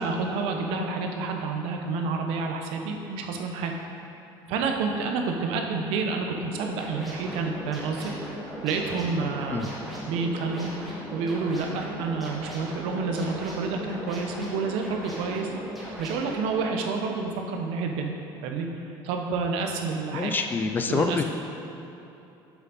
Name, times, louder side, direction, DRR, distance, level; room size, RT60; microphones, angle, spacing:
voice 1, 0.0-3.7 4.5-8.1 8.6-9.7 10.0-10.7 11.1-15.5 16.0-18.1 18.4-18.7 19.0-20.3 20.9-21.2, right 4 dB, 80° right, 3 dB, 0.9 m, -29 dB
sound 1, 6.4-16.6, equal, ahead, 1.5 m, -38 dB
voice 2, 20.1-21.2, left 4 dB, 20° left, 6 dB, 0.3 m, -26 dB
7.2 x 7.1 x 4.1 m, 3.0 s
cardioid pair, 165°, 10 cm